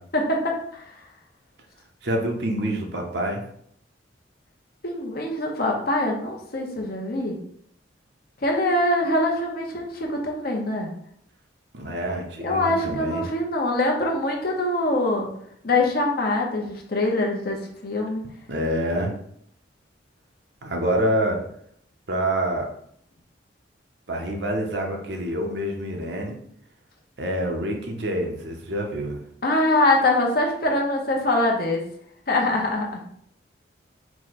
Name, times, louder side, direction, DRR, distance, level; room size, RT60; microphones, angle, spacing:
voice 1, 0.1-0.8 4.8-7.4 8.4-10.9 12.4-15.3 15.6-18.3 29.4-31.8 32.3-33.0, left 2 dB, 50° left, 0 dB, 0.8 m, -23 dB
voice 2, 2.0-3.4 11.7-13.2 18.5-19.1 20.6-21.4 22.1-22.7 24.1-26.4 27.2-29.2, right 1 dB, 60° right, 2 dB, 0.8 m, -26 dB
4.8 x 2.2 x 4.0 m, 0.69 s
head